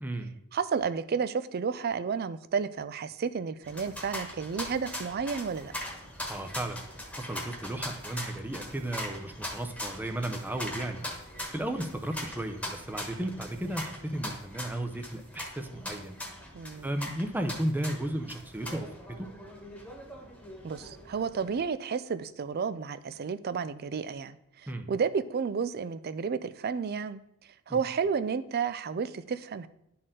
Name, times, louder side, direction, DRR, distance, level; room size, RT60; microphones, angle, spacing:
voice 1, 0.0-0.3 6.3-6.8 7.2-11.0 11.5-16.2 16.8-18.9 19.2-19.3 24.7-24.9 27.7-27.8, right 1 dB, 10° right, 6 dB, 0.6 m, -34 dB
voice 2, 0.5-5.7 16.5-16.9 20.6-24.4 24.9-27.2 27.7-29.7, right 6 dB, 50° right, 14 dB, 0.4 m, -31 dB
sound 1, 3.6-21.6, left 1 dB, 5° left, 1.4 m, -41 dB
11.5 x 4.3 x 3.7 m, 0.81 s
head